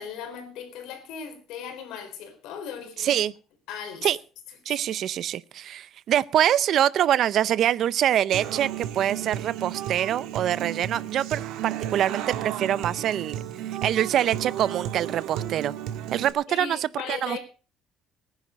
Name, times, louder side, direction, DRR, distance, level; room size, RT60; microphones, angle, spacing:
voice 1, 0.0-3.2 3.7-4.1 4.7-4.8 16.5-17.4, left 7 dB, 75° left, 4.0 m, -37 dB
voice 2, 3.0-3.3 4.0-4.2 4.7-13.4 13.7-15.7 16.1-17.4, right 11 dB, 50° right, 0.6 m, -25 dB
Human voice / Acoustic guitar, 8.3-16.3, right 11 dB, 80° right, 1.8 m, -33 dB
19.0 x 10.0 x 5.1 m
cardioid pair, 160°, 0 cm